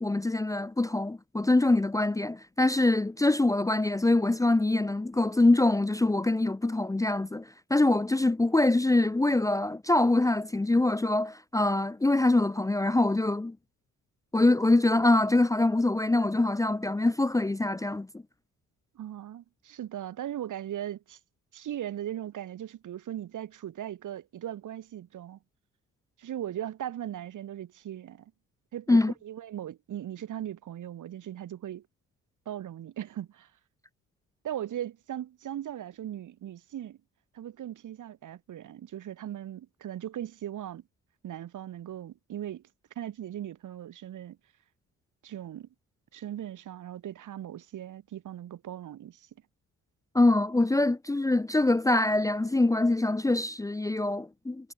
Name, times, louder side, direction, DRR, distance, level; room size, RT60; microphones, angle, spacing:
voice 1, 0.0-13.6 14.3-18.2 28.9-29.1 50.1-54.7, left 2 dB, 10° left, 0.7 m, -24 dB
voice 2, 19.0-21.2 21.5-25.4 26.2-28.3 28.7-31.8 32.5-33.5 34.4-37.0 37.3-40.8 41.2-42.6 43.0-44.4 45.2-45.7 46.1-49.3 50.8-50.9, right 11 dB, 65° right, 3.4 m, -38 dB
cardioid pair, 115°, 32 cm